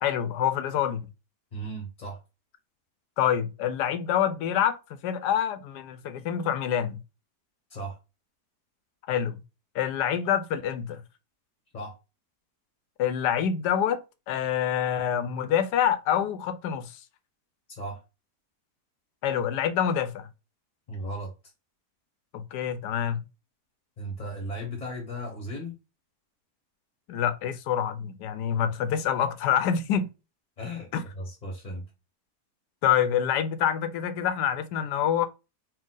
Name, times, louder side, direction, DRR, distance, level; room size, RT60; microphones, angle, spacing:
voice 1, 0.0-1.1 3.2-7.0 9.1-9.4 9.7-11.0 13.0-17.0 19.2-20.3 22.3-23.2 27.1-30.1 30.9-31.0 32.8-35.3, left 9 dB, 90° left, 1.2 m, -26 dB
voice 2, 1.5-2.2 7.7-8.0 11.7-11.9 17.7-18.0 20.9-21.3 24.0-25.8 30.6-30.9 31.1-31.9, equal, 30° left, 0.8 m, -36 dB
4.5 x 2.4 x 3.7 m
omnidirectional pair, 1.7 m